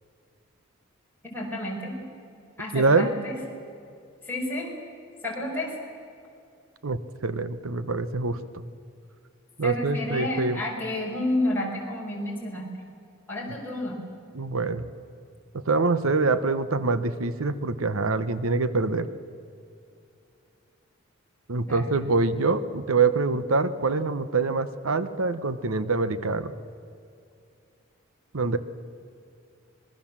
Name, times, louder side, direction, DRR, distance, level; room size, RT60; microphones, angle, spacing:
voice 1, 1.2-2.0 2.6-3.3 4.3-4.7 5.2-5.8 9.6-12.7 13.3-14.0 21.6-21.8, left 1 dB, 10° left, -3 dB, 5.4 m, -30 dB
voice 2, 2.7-3.1 6.8-8.6 9.6-10.6 14.3-14.8 15.5-19.1 21.5-26.5 28.3-28.6, right 3 dB, 85° right, 13 dB, 0.9 m, -25 dB
25.5 x 21.0 x 7.4 m, 2.5 s
head